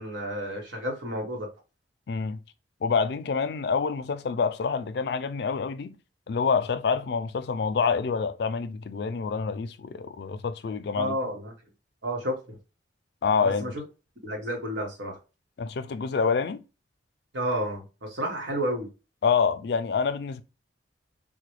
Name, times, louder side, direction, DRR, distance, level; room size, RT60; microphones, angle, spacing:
voice 1, 0.0-1.5 11.0-11.5 12.0-12.6 13.4-13.8 14.2-15.2 17.3-18.9, equal, 85° right, 1.3 m, -31 dB
voice 2, 2.1-2.4 2.8-6.0 6.3-11.2 13.2-13.7 15.6-16.6 19.2-20.4, left 5 dB, 60° left, 0.4 m, -27 dB
3.7 x 2.2 x 3.0 m
head